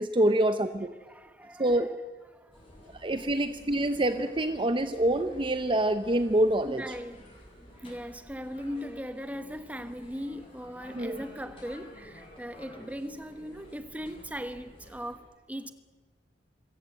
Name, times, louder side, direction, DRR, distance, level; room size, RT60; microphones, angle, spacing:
voice 1, 0.0-0.9 1.6-1.9 3.0-6.8 10.9-11.2, right 1 dB, 30° right, 0.8 m, -26 dB
voice 2, 1.0-1.9 2.3-2.6 6.7-7.3 7.7-15.7, equal, 10° right, 1.2 m, -39 dB
sound 1, 2.5-15.2, left 1 dB, 30° left, 7.7 m, -52 dB
26.0 x 16.5 x 7.9 m
head